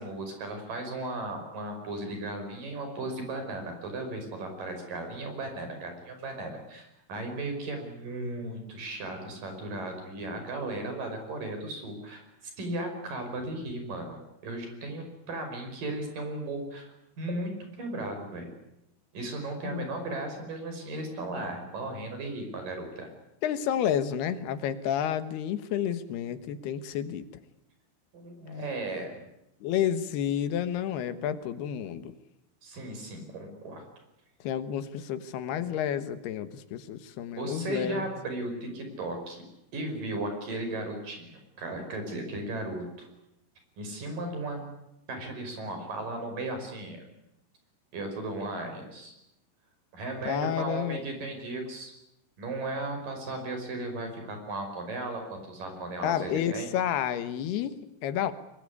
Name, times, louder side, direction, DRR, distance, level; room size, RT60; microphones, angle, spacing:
voice 1, 0.0-18.5 19.1-23.1 28.1-29.2 32.6-33.9 37.4-39.4 39.7-43.1 43.8-44.6 45.1-47.0 47.9-49.1 49.9-51.9 52.4-56.7, right 2 dB, 55° right, 5 dB, 7.0 m, -36 dB
voice 2, 23.4-27.2 29.6-32.1 34.4-38.1 50.3-51.0 56.0-57.7 58.0-58.3, left 10 dB, 80° left, 12 dB, 3.3 m, -30 dB
24.0 x 22.5 x 9.7 m, 0.86 s
omnidirectional pair, 4.5 m